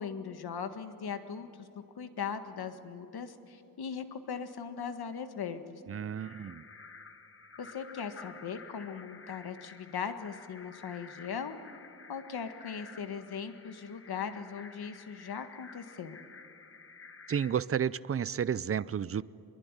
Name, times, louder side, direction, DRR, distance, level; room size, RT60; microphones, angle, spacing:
voice 1, 0.0-1.7 2.0-5.8 7.6-11.6 12.1-16.2, left 6 dB, 85° left, 8 dB, 1.7 m, -39 dB
voice 2, 5.9-6.6 17.3-19.2, right 8 dB, 40° right, 18 dB, 0.5 m, -31 dB
sound 1, 6.2-17.6, left 4 dB, 35° left, 1.4 m, -52 dB
24.5 x 22.5 x 9.8 m, 2.9 s
wide cardioid pair, 160°, 37 cm